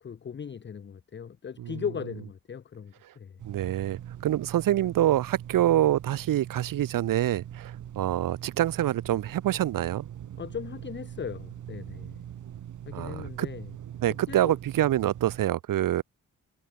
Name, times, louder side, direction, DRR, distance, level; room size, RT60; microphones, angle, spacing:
voice 1, 0.0-3.4 10.4-12.2 12.9-13.7 14.1-14.6, left 7 dB, 35° left, 0.8 m, -38 dB
sound 1, 3.4-15.5, right 10 dB, 65° right, 1.3 m, -42 dB
voice 2, 3.5-10.1 12.9-13.5 14.0-16.0, right 13 dB, 90° right, 1.1 m, -26 dB
cardioid pair, 110°, 32 cm